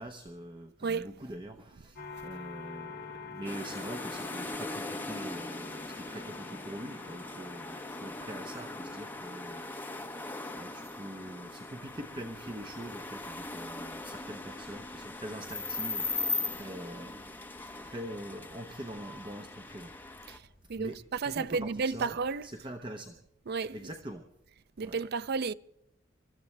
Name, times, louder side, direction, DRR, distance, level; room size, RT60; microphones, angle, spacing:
voice 1, 0.0-17.4 17.8-20.0 20.8-21.0 21.2-22.2 22.4-23.2 23.7-24.3 24.8-25.0, right 1 dB, 25° right, 0.9 m, -44 dB
sound 1, 2.0-19.7, left 5 dB, 55° left, 1.8 m, -50 dB
sound 2, 3.4-20.4, left 2 dB, 10° left, 1.1 m, -40 dB
sound 3, 11.8-22.3, equal, 70° left, 5.0 m, -62 dB
voice 2, 21.2-22.5 23.5-23.7 24.8-25.5, right 5 dB, 50° right, 0.5 m, -32 dB
26.0 x 14.0 x 3.3 m
head